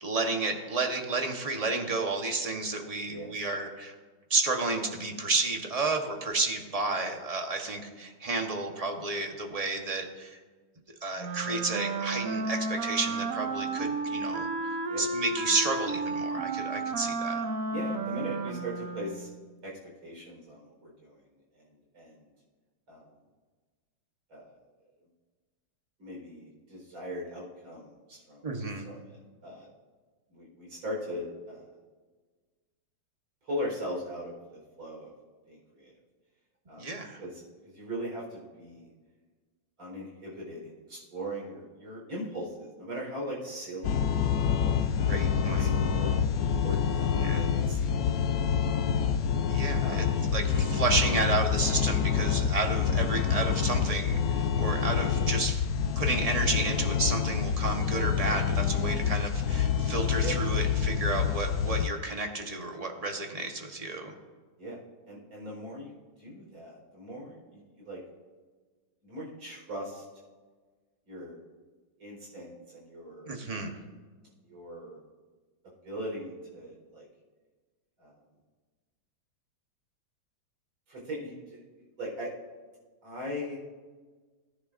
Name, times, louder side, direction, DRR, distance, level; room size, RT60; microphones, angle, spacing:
voice 1, 0.0-4.0 4.3-10.4 11.0-14.5 15.0-17.4 28.4-28.9 36.8-37.2 45.1-45.7 47.2-47.4 49.5-50.1 50.3-55.6 56.0-64.1 73.3-73.7, right 3 dB, 25° right, 3 dB, 0.9 m, -31 dB
voice 2, 3.0-3.4 14.9-15.0 17.7-19.3 19.6-21.2 21.5-22.3 22.9-23.1 24.3-24.6 26.0-28.4 28.8-29.7 30.3-31.7 33.4-35.1 35.5-35.9 36.7-36.9 37.2-37.4 37.7-38.9 39.8-44.1 44.6-46.1 46.6-49.3 49.8-50.1 60.2-60.3 64.6-64.8 65.1-68.0 69.0-70.0 71.1-71.4 72.0-73.7 74.4-75.0 75.8-77.1 78.0-78.1 80.9-82.3 83.0-83.6, equal, 80° right, -3 dB, 5.1 m, -40 dB
Wind instrument woodwind instrument, 11.2-19.4, right 3 dB, 60° right, 1.0 m, -32 dB
sound 1, 43.8-61.9, left 7 dB, 70° left, 0.8 m, -27 dB
18.5 x 10.0 x 2.6 m, 1.4 s
omnidirectional pair, 2.2 m